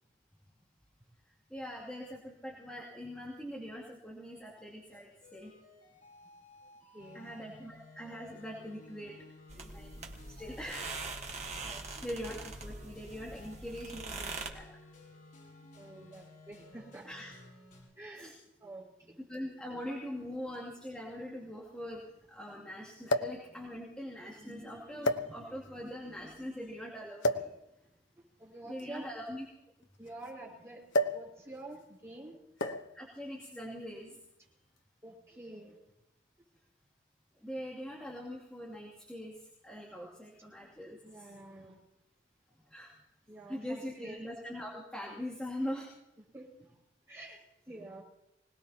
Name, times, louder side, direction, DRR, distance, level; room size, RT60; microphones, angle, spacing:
voice 1, 1.5-5.5 7.1-9.1 9.5-11.1 12.0-14.7 17.0-17.4 18.2-18.3 19.2-27.5 28.7-29.4 32.7-34.2 37.4-41.3 42.6-42.9 43.5-45.9, equal, 5° left, -6 dB, 2.7 m, -42 dB
sound 1, 4.9-17.8, left 2 dB, 45° left, 7.8 m, -55 dB
voice 2, 6.9-7.3 11.7-12.0 15.7-17.1 18.0-18.3 18.6-19.2 28.4-29.1 30.0-30.8 31.1-32.3 35.0-35.8 41.0-41.8 43.3-44.2 46.3-46.8 47.1-48.0, right 2 dB, 15° right, -5 dB, 5.9 m, -48 dB
sound 2, 9.5-14.5, right 3 dB, 35° right, 1.5 m, -43 dB
sound 3, 19.3-19.4 20.5-20.6 20.9-21.0 23.1-23.5 24.3-24.5 25.0-25.7 27.2-27.6 28.7-30.3 30.9-31.3 31.6-31.8 32.6-33.0 33.9-34.2, left 1 dB, 75° left, 1.1 m, -32 dB
25.5 x 19.0 x 2.9 m, 0.89 s
head